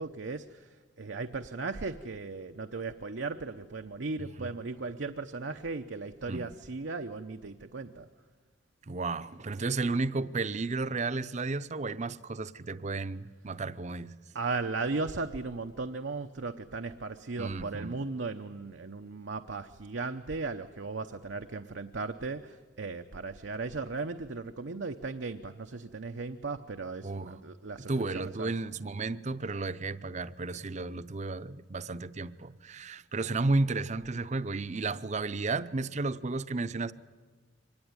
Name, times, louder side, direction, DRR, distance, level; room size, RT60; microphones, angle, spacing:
voice 1, 0.0-8.1 14.3-28.5, right 3 dB, 85° right, 0.8 m, -37 dB
voice 2, 4.2-4.5 6.3-6.5 8.9-14.1 17.4-18.0 27.0-27.4 27.9-36.9, right 3 dB, 40° right, 0.7 m, -33 dB
24.5 x 19.5 x 9.7 m
head